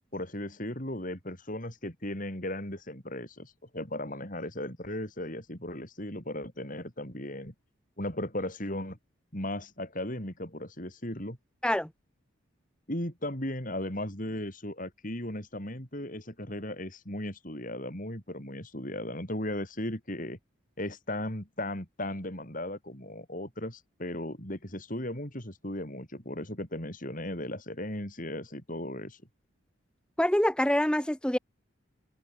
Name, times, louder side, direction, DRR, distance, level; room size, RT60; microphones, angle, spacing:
voice 1, 0.1-7.5 8.0-9.0 9.3-11.4 12.9-20.4 20.8-29.2, left 1 dB, 40° left, 5.3 m, -36 dB
voice 2, 30.2-31.4, left 1 dB, 5° left, 0.6 m, -25 dB
head